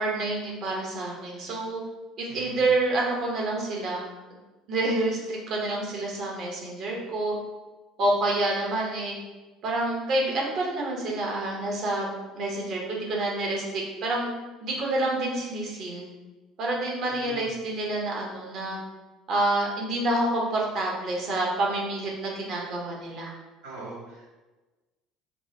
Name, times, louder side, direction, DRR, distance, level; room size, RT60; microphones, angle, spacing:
voice 1, 0.0-1.8 2.2-4.0 4.7-7.3 8.0-9.2 9.6-14.3 14.6-16.1 16.6-18.8 19.3-23.3, right 2 dB, 50° right, -2 dB, 1.1 m, -28 dB
voice 2, 2.3-2.7 17.1-17.5 23.6-24.3, right 1 dB, 70° right, -6 dB, 1.4 m, -41 dB
3.4 x 2.4 x 4.3 m, 1.2 s
figure-of-eight pair, 60°, 0 cm